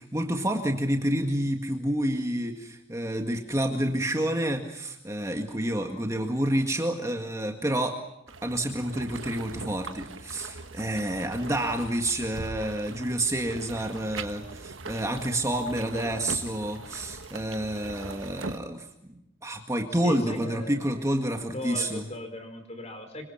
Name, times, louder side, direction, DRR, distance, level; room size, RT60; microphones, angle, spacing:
voice 1, 0.0-8.0 8.4-22.0, right 1 dB, 15° right, 3 dB, 1.9 m, -29 dB
sound 1, 8.3-18.6, right 3 dB, 75° right, 1.5 m, -41 dB
voice 2, 19.9-20.8 21.5-23.3, left 1 dB, 35° left, 7 dB, 4.9 m, -38 dB
26.0 x 24.0 x 5.8 m, 0.82 s
head